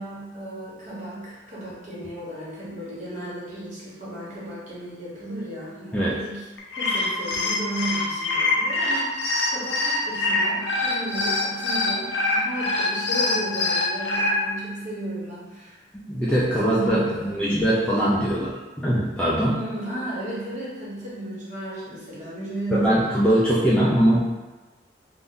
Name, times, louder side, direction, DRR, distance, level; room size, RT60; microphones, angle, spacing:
voice 1, 0.0-6.5 6.8-15.8 16.4-17.5 19.4-24.0, right 1 dB, 40° right, -8 dB, 0.9 m, -34 dB
sound 1, 6.6-14.3, left 2 dB, 75° left, 0.5 m, -24 dB
voice 2, 15.9-18.5 18.8-19.6 22.7-24.3, right 1 dB, 5° left, -8 dB, 0.3 m, -21 dB
2.5 x 2.1 x 3.6 m, 1.2 s
head